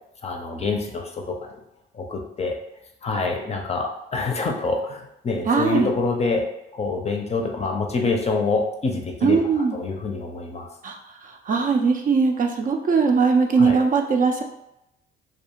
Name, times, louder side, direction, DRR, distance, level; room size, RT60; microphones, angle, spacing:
voice 1, 0.2-1.5 1.9-2.6 3.0-6.4 6.7-10.7 13.6-13.8, left 3 dB, 30° left, 2 dB, 0.5 m, -26 dB
voice 2, 5.5-5.9 9.2-9.8 10.8-11.0 11.2-14.4, right 5 dB, 40° right, 3 dB, 0.4 m, -20 dB
2.4 x 2.3 x 2.9 m, 0.85 s
cardioid pair, 80°, 21 cm